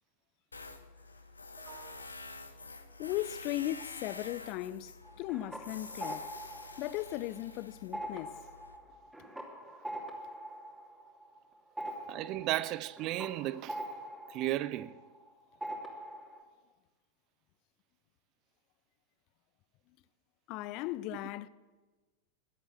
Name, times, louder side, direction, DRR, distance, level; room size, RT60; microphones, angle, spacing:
Tools, 0.5-8.8, left 3 dB, 80° left, 1.1 m, -48 dB
voice 1, 1.6-2.0 12.1-13.8 14.3-14.9, right 15 dB, 40° right, 0.5 m, -35 dB
voice 2, 3.0-6.3 6.8-8.3 20.5-21.5, left 15 dB, 40° left, 0.6 m, -37 dB
sound 1, 5.0-7.5 7.8-15.3 15.6-16.4, right 1 dB, 5° right, 2.9 m, -44 dB
21.5 x 8.1 x 8.1 m
figure-of-eight pair, 90°, 0 cm